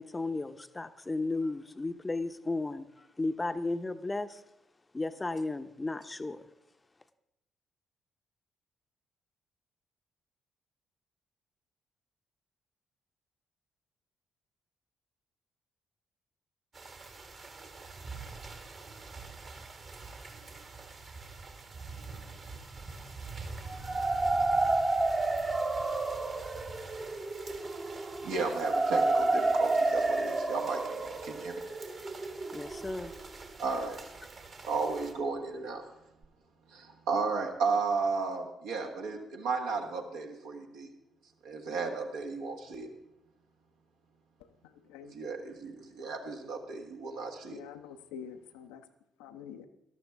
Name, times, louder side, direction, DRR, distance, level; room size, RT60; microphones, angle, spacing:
voice 1, 0.0-4.4 4.9-6.4 32.5-33.1, left 2 dB, 20° left, 11 dB, 0.7 m, -34 dB
sound 1, 16.7-35.1, right 3 dB, 45° right, 1.7 m, -46 dB
sound 2, 23.7-33.5, right 2 dB, 30° right, 1.0 m, -30 dB
voice 2, 28.2-31.6 33.6-34.0 34.7-35.8 36.7-40.9 41.4-42.9 45.0-47.6, right 4 dB, 70° right, 1 dB, 1.5 m, -34 dB
voice 3, 47.5-48.8 49.2-49.7, left 8 dB, 75° left, 7 dB, 0.6 m, -46 dB
13.0 x 12.0 x 3.5 m, 0.84 s
figure-of-eight pair, 40°, 0 cm